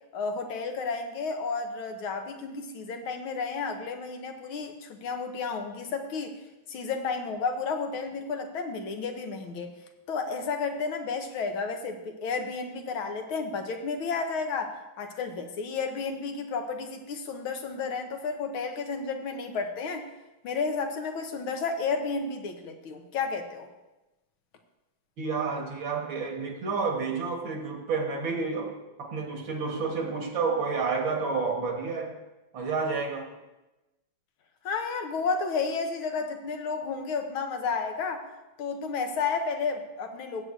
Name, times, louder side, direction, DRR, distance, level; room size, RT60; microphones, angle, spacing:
voice 1, 0.1-6.4 6.7-9.7 10.1-20.1 20.4-23.7 34.6-38.2 38.6-40.4, left 4 dB, 80° left, 5 dB, 1.7 m, -32 dB
voice 2, 25.2-32.2 32.5-33.3, right 4 dB, 65° right, 2 dB, 2.1 m, -30 dB
16.5 x 7.9 x 2.6 m, 1.0 s
omnidirectional pair, 2.3 m